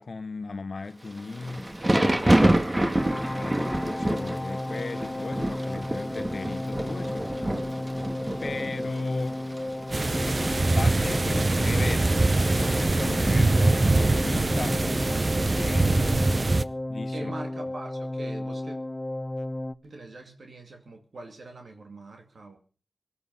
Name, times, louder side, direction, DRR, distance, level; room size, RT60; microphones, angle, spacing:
voice 1, 0.0-2.5 3.3-7.6 8.4-9.4 10.7-12.2 12.4-14.8 15.5-16.5 16.9-17.3, left 3 dB, 60° left, 1.0 m, -36 dB
Thunder / Rain, 1.1-14.2, right 1 dB, 20° right, 1.6 m, -29 dB
sound 1, 2.9-19.7, left 1 dB, 20° left, 0.8 m, -33 dB
voice 2, 8.3-8.7 17.1-18.8 19.8-22.6, right 2 dB, 70° right, 2.4 m, -43 dB
sound 2, 9.9-16.6, right 2 dB, 40° right, 0.7 m, -23 dB
18.5 x 13.0 x 5.5 m
cardioid pair, 60°, 0 cm